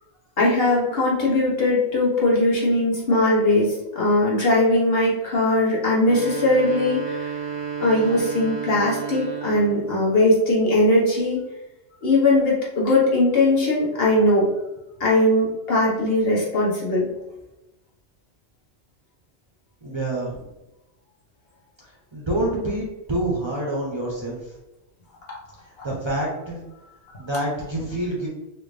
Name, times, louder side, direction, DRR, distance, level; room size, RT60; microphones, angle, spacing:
voice 1, 0.4-7.3 7.8-11.4 12.0-14.5 15.0-17.1 25.3-25.4, left 1 dB, 60° left, -5 dB, 1.3 m, -20 dB
sound 1, 5.9-10.0, right 6 dB, 85° right, 1.0 m, -32 dB
voice 2, 19.8-20.4 21.8-24.5 25.8-26.6 27.2-28.3, right 1 dB, 30° right, -4 dB, 0.7 m, -27 dB
4.0 x 2.5 x 3.2 m, 0.97 s
omnidirectional pair, 1.1 m